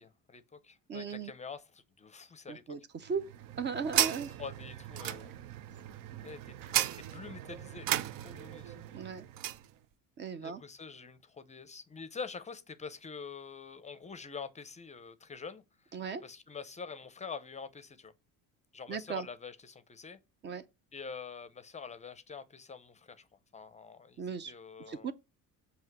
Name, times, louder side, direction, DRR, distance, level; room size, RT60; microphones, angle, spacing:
voice 1, 0.0-2.8 4.0-5.3 6.2-8.9 10.4-18.1 18.7-20.2 20.9-23.3 23.5-25.1, left 5 dB, 20° left, 0.5 m, -46 dB
voice 2, 0.9-1.3 2.5-3.2 3.6-4.3 8.9-9.3 10.2-10.6 15.9-16.2 18.9-19.3 20.4-20.6 24.2-24.5 24.9-25.1, right 6 dB, 30° right, 0.5 m, -37 dB
sound 1, 3.1-9.7, right 12 dB, 70° right, 0.6 m, -35 dB
7.6 x 2.9 x 5.9 m
cardioid pair, 140°, 34 cm